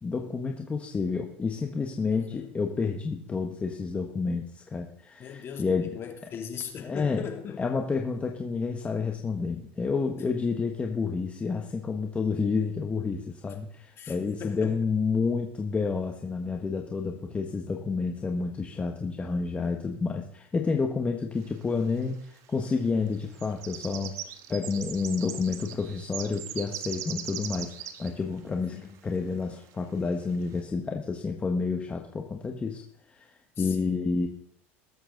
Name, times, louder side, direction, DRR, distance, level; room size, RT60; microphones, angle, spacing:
voice 1, 0.0-6.0 6.8-7.2 7.6-24.1 24.5-32.8 33.1-34.3, left 4 dB, 20° left, 2 dB, 1.4 m, -30 dB
voice 2, 2.1-2.5 5.2-7.6 14.0-14.8 28.6-28.9 33.6-34.0, left 7 dB, 40° left, 4 dB, 2.8 m, -39 dB
sound 1, 21.7-21.8 22.6-22.8 23.1-28.1 28.4-28.5 28.9-29.0 29.8-29.9 30.3-30.5, right 10 dB, 50° right, 1.4 m, -39 dB
20.5 x 7.9 x 3.9 m, 0.65 s
supercardioid pair, 110°, 6 cm